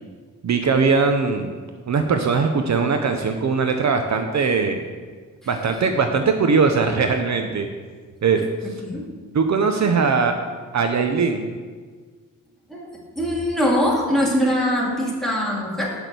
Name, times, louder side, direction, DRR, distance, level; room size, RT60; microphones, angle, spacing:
voice 1, 0.4-1.5 1.9-4.8 5.5-7.7 8.2-8.4 9.3-10.3 10.7-11.5, right 5 dB, 55° right, 5 dB, 0.7 m, -20 dB
voice 2, 8.6-9.1 12.7-12.9 13.2-15.9, equal, ahead, -4 dB, 2.4 m, -22 dB
7.9 x 6.0 x 6.7 m, 1.5 s
wide cardioid pair, 100°, 33 cm